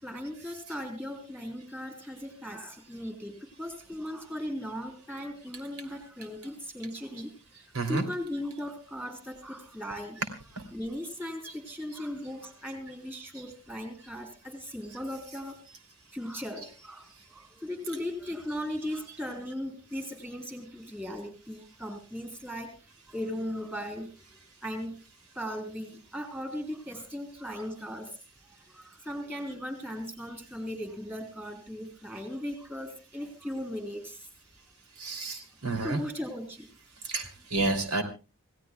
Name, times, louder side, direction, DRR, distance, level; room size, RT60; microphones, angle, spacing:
voice 1, 0.0-10.2 10.7-15.6 16.1-22.8 23.1-24.1 24.6-25.0 25.4-28.2 28.4-34.3 35.1-35.2 35.7-36.7, equal, 10° right, 6 dB, 3.5 m, -38 dB
voice 2, 35.0-36.0 37.1-38.0, right 3 dB, 85° right, 6 dB, 2.9 m, -30 dB
27.5 x 17.0 x 2.3 m, 0.31 s
head